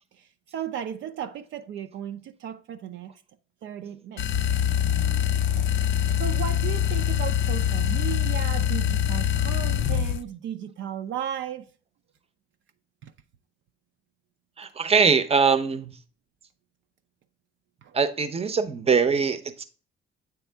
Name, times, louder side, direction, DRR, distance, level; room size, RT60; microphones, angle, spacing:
voice 1, 0.5-3.1 3.6-4.3 5.5-5.6 6.1-11.7 13.0-13.1 17.8-18.0, right 10 dB, 70° right, 0.5 m, -35 dB
sound 1, 4.2-10.2, left 10 dB, 70° left, 0.4 m, -24 dB
voice 2, 14.6-16.0 17.9-19.6, right 5 dB, 30° right, 0.7 m, -22 dB
8.1 x 3.5 x 3.4 m
cardioid pair, 90°, 20 cm